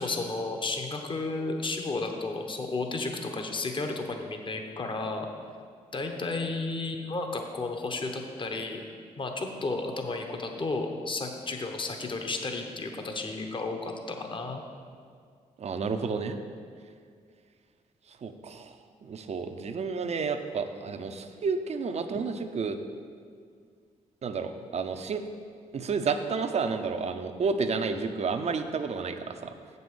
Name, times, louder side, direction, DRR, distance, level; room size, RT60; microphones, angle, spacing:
voice 1, 0.0-5.3 5.9-8.8 9.2-14.6, left 3 dB, 35° left, 4 dB, 1.0 m, -33 dB
voice 2, 15.6-16.4 18.2-18.7 19.0-22.8 24.2-25.2 25.7-29.5, right 5 dB, 50° right, 8 dB, 0.7 m, -31 dB
7.5 x 5.4 x 6.3 m, 2.1 s
supercardioid pair, 55°, 14 cm